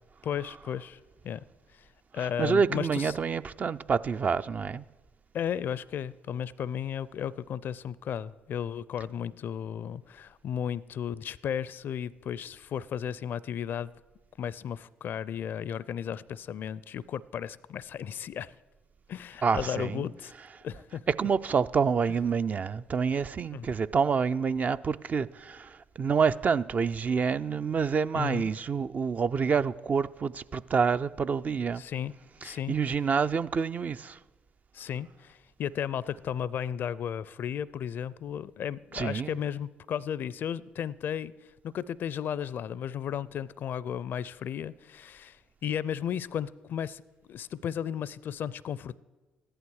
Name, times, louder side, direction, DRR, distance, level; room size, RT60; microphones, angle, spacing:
voice 1, 0.2-1.4 1.7-1.9 2.1-3.2 5.3-13.9 14.4-18.5 19.1-20.3 20.6-21.0 23.5-23.7 28.1-28.5 31.8-32.1 32.4-32.7 34.7-41.3 41.6-49.0, left 9 dB, 60° left, 0.4 m, -34 dB
voice 2, 2.2-4.8 19.4-20.0 21.2-31.8 32.4-34.2 38.9-39.3, right 6 dB, 40° right, 0.4 m, -27 dB
14.5 x 11.0 x 4.8 m
hypercardioid pair, 50°, 4 cm